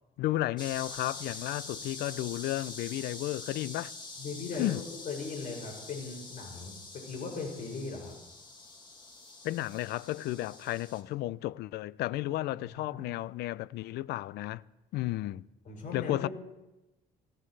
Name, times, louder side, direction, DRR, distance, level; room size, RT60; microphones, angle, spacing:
voice 1, 0.2-3.9 4.5-4.8 9.4-14.6 14.9-15.4 15.9-16.3, left 16 dB, 75° left, 0.5 m, -33 dB
sound 1, 0.6-11.0, left 3 dB, 25° left, 2.1 m, -45 dB
voice 2, 4.2-8.1 12.6-13.0 15.6-16.3, left 4 dB, 55° left, 6.5 m, -39 dB
20.0 x 17.5 x 3.3 m
cardioid pair, 110°, 17 cm